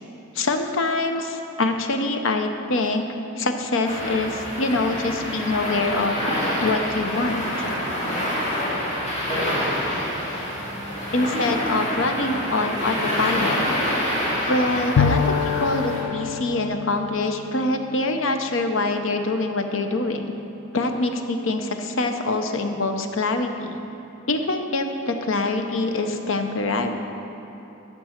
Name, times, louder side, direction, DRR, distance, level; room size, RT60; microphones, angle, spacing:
voice 1, 0.3-3.1 3.4-6.1 6.6-7.7 11.1-13.9 14.5-20.3 20.7-23.8 24.3-27.0, left 2 dB, 65° left, 6 dB, 0.7 m, -24 dB
sound 1, 3.8-16.0, equal, 35° left, 2.2 m, -27 dB
Bowed string instrument, 15.0-18.7, left 7 dB, 80° left, 0.3 m, -26 dB
13.5 x 6.7 x 4.4 m, 3.0 s
head